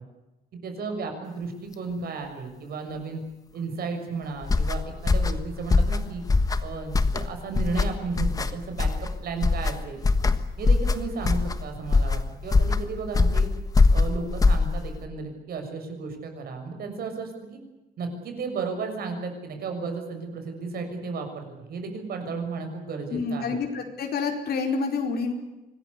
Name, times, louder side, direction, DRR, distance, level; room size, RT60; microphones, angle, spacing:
voice 1, 0.6-3.2 3.5-6.2 6.6-8.9 9.2-10.0 10.6-13.5 13.9-17.6 18.0-23.6, right 4 dB, 60° right, 5 dB, 6.6 m, -34 dB
sound 1, 4.4-15.0, left 3 dB, 20° left, 1.4 m, -23 dB
voice 2, 23.1-25.3, left 4 dB, 65° left, 3 dB, 4.6 m, -28 dB
25.5 x 20.5 x 8.4 m, 1.0 s
cardioid pair, 175°, 17 cm